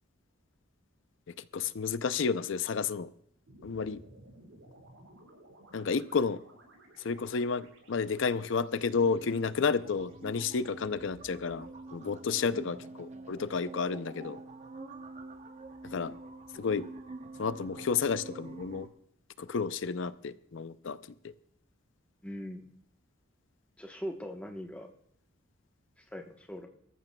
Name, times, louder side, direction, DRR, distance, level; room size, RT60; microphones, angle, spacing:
voice 1, 1.5-3.1 3.6-4.0 5.7-6.4 7.0-14.4 15.8-16.1 16.6-16.9 17.4-18.9 19.4-21.0 21.2-21.3, left 5 dB, 65° left, 14 dB, 0.5 m, -31 dB
sound 1, 3.5-11.8, right 1 dB, 75° right, 6.0 m, -58 dB
sound 2, 8.9-18.9, right 3 dB, 35° right, 0.8 m, -46 dB
voice 2, 12.5-12.8 22.2-22.7 23.8-24.9 26.0-26.7, equal, 5° left, 3 dB, 1.0 m, -41 dB
24.0 x 14.0 x 2.3 m, 0.71 s
head